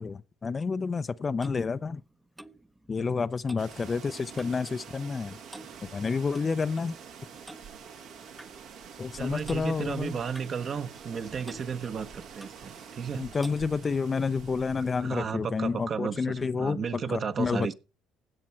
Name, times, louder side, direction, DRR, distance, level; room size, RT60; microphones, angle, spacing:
voice 1, 0.0-2.0 2.9-5.4 5.8-6.9 9.0-10.2 13.1-17.7, left 5 dB, 35° left, 0.5 m, -29 dB
Clock, 0.8-4.7 5.0-5.2 5.5-6.5 7.5-7.7 8.4-8.5 9.4-9.7 10.3-11.2 11.4-11.7 12.4-12.6 13.4-13.6, right 1 dB, 10° right, 0.7 m, -49 dB
sound 1, 3.6-15.3, right 6 dB, 75° right, 2.0 m, -47 dB
voice 2, 9.2-13.3 15.0-17.7, right 6 dB, 50° right, 1.2 m, -34 dB
16.5 x 7.3 x 4.5 m
supercardioid pair, 65°, 0 cm